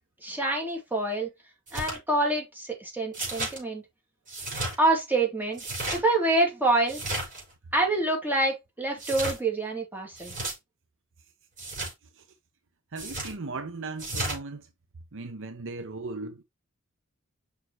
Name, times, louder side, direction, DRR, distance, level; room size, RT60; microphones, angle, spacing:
voice 1, 0.2-1.3 1.7-3.8 4.8-7.0 7.7-10.4, right 2 dB, 10° right, 2.7 m, -26 dB
sound 1, 1.7-2.0 3.1-3.6 4.3-4.7 5.5-6.0 6.9-7.4 9.0-9.4 10.2-10.5 11.6-11.9 13.0-13.3 14.0-14.4, right 2 dB, 35° right, 5.0 m, -33 dB
voice 2, 12.9-14.7 15.1-16.4, right 3 dB, 60° right, 0.8 m, -37 dB
6.5 x 5.5 x 3.0 m
head